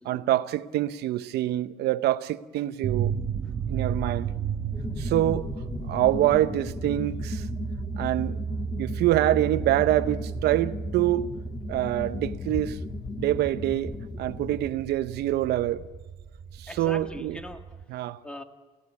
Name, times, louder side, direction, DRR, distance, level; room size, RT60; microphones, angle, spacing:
voice 1, 0.0-3.1 3.7-4.3 5.0-5.5 5.9-7.5 8.0-8.4 8.8-11.3 11.7-12.8 13.2-15.8 16.6-17.4 17.9-18.2, right 14 dB, 75° right, 0.8 m, -25 dB
sound 1, 2.8-17.8, right 7 dB, 35° right, 1.1 m, -34 dB
sound 2, 4.7-14.7, left 4 dB, 25° left, 0.8 m, -37 dB
voice 2, 16.7-18.4, left 1 dB, 5° left, 1.9 m, -42 dB
28.5 x 16.5 x 8.4 m
cardioid pair, 110°, 17 cm